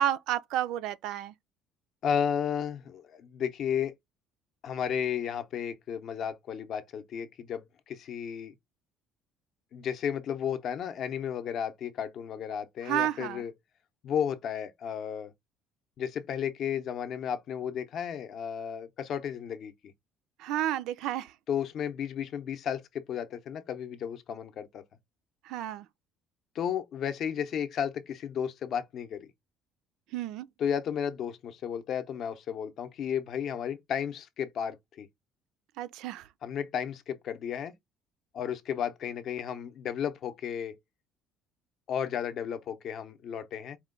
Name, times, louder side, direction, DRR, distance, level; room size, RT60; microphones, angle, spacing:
voice 1, 0.0-1.3 12.8-13.4 20.4-21.3 25.5-25.9 30.1-30.5 35.8-36.3, right 11 dB, 65° right, 0.4 m, -31 dB
voice 2, 2.0-3.9 4.6-8.5 9.7-13.5 14.0-15.3 16.0-19.7 21.5-24.8 26.5-29.3 30.6-35.1 36.4-37.7 38.3-40.8 41.9-43.8, left 8 dB, 40° left, 0.6 m, -33 dB
4.3 x 2.2 x 3.7 m
cardioid pair, 170°, 0 cm